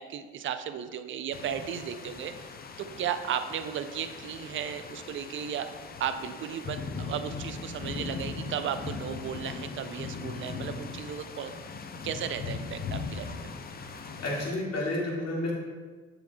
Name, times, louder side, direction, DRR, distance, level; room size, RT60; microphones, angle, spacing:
voice 1, 0.0-2.3 2.8-5.7 6.0-11.5 12.0-13.3, right 9 dB, 35° right, 10 dB, 0.5 m, -35 dB
sound 1, 1.3-14.5, left 4 dB, 25° left, 0.6 m, -39 dB
voice 2, 13.9-15.5, left 1 dB, 45° left, -3 dB, 2.0 m, -31 dB
7.7 x 6.9 x 2.3 m, 1.5 s
figure-of-eight pair, 50°, 37 cm